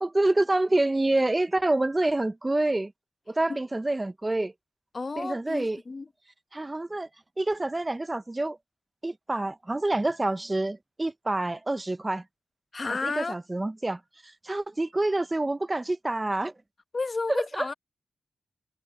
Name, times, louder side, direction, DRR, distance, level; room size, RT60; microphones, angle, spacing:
voice 1, 0.0-2.9 3.3-4.5 5.2-5.8 6.5-7.1 7.4-8.6 9.0-12.2 13.0-16.5 17.3-17.7, right 2 dB, 20° right, 0.6 m, -27 dB
voice 2, 4.9-6.1 12.7-13.4 16.9-17.7, left 3 dB, 40° left, 1.0 m, -32 dB
cardioid pair, 85°, 0 cm